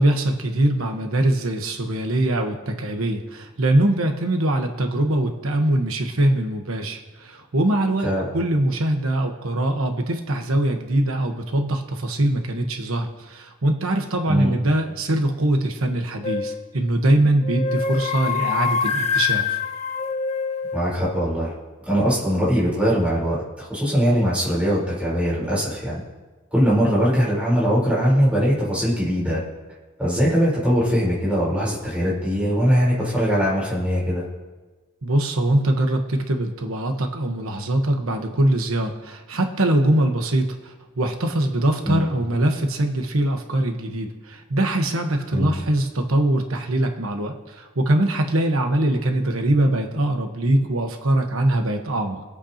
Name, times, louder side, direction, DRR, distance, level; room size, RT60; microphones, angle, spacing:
voice 1, 0.0-19.6 35.0-52.2, right 1 dB, 90° right, 4 dB, 1.2 m, -22 dB
sound 1, 16.2-16.7 17.4-20.9, left 6 dB, 35° left, 0.6 m, -25 dB
voice 2, 20.7-21.5 21.9-26.0 26.5-29.4 30.0-34.2 41.8-42.1 45.3-45.5, equal, 5° right, -7 dB, 3.9 m, -21 dB
24.5 x 8.3 x 2.9 m, 1.3 s
head